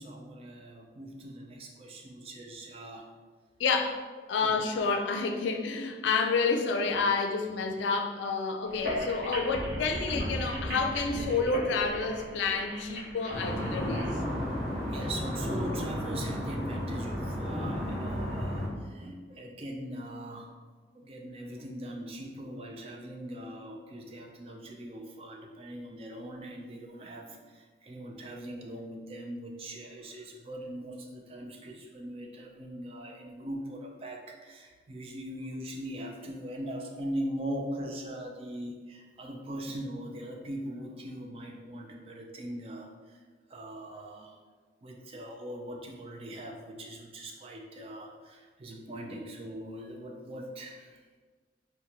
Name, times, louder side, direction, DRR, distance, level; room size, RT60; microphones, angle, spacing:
voice 1, 0.0-3.1 4.4-4.7 14.9-20.5 20.9-43.2 43.5-44.4 44.8-51.0, right 1 dB, 30° right, 1 dB, 0.3 m, -41 dB
voice 2, 3.6-4.0 4.3-14.1, left 4 dB, 85° left, 4 dB, 0.4 m, -29 dB
sound 1, 8.7-14.1, equal, 55° right, 0.9 m, -36 dB
sound 2, 13.3-18.7, equal, ahead, 0.9 m, -33 dB
3.9 x 2.1 x 2.9 m, 1.5 s
head